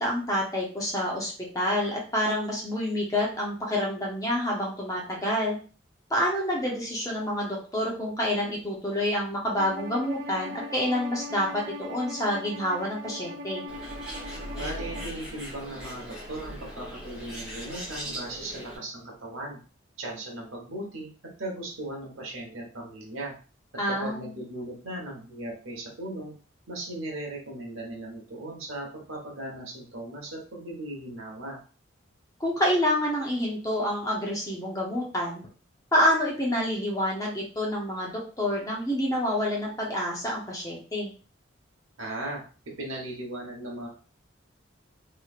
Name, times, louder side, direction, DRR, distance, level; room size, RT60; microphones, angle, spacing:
voice 1, 0.0-5.6 6.1-13.7 23.8-24.3 32.4-35.4 35.9-41.1, left 1 dB, 15° left, -3 dB, 0.7 m, -28 dB
Bowed string instrument, 9.6-15.2, equal, 55° right, 0.6 m, -40 dB
Bird, 13.7-18.8, equal, 5° right, 1.4 m, -39 dB
voice 2, 14.5-19.6 20.0-21.1 21.4-23.3 24.0-26.4 26.7-31.6 42.0-42.4 42.8-43.9, right 1 dB, 90° right, -1 dB, 1.2 m, -37 dB
3.1 x 3.0 x 2.4 m, 0.38 s
head